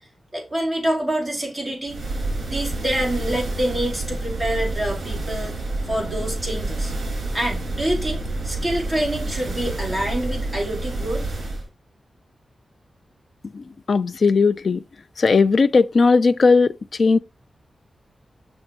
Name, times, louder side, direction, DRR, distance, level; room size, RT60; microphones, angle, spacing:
voice 1, 0.3-2.0 2.4-6.9 7.3-11.2, right 1 dB, 5° right, 4.6 m, -26 dB
sound 1, 1.9-11.7, right 2 dB, 55° right, 5.3 m, -28 dB
voice 2, 13.5-14.8 15.2-17.2, left 4 dB, 55° left, 0.5 m, -17 dB
7.3 x 6.4 x 4.5 m
wide cardioid pair, 115°, 0 cm